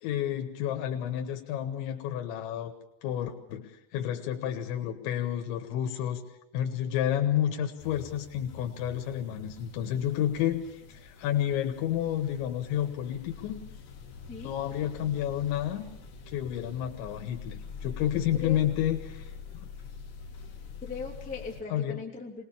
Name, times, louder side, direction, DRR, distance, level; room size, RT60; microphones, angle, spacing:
voice 1, 0.0-2.7 3.0-6.2 6.5-13.6 14.4-15.9 16.3-19.3 21.7-22.0, left 11 dB, 85° left, 5 dB, 3.6 m, -30 dB
sound 1, 7.8-21.6, left 5 dB, 55° left, 1.6 m, -45 dB
voice 2, 18.3-18.6 20.8-22.4, left 4 dB, 5° left, -1 dB, 1.9 m, -39 dB
23.5 x 19.5 x 7.3 m, 0.81 s
omnidirectional pair, 5.1 m